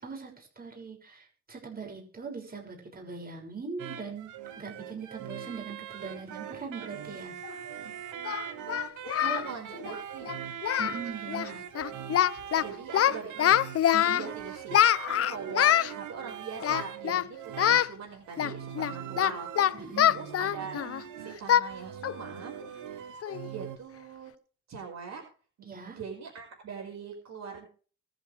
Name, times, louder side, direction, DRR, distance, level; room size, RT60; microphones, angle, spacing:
voice 1, 0.0-4.3 4.6-7.3 9.2-9.4 10.8-11.6 13.9-14.2 19.8-20.2 25.6-26.0, right 5 dB, 30° right, 1 dB, 6.3 m, -40 dB
sound 1, 3.8-23.8, right 9 dB, 80° right, 1.5 m, -41 dB
Singing, 7.4-7.5 8.3-9.5 9.7-10.0 10.3-10.4 10.6-11.0 11.3-11.5 11.8-12.6 12.9-14.3 14.7-15.9 16.6-17.3 17.6-17.9 18.4-21.0 21.5-21.7 22.0-22.2 22.6-22.7 23.2-23.5, left 10 dB, 50° left, 0.7 m, -25 dB
voice 2, 9.0-10.3 12.6-19.5 19.8-22.6 22.9-23.1 23.5-24.3 24.7-25.2 25.6-27.7, right 6 dB, 60° right, 2 dB, 5.4 m, -42 dB
24.0 x 8.2 x 3.4 m, 0.39 s
cardioid pair, 90°, 30 cm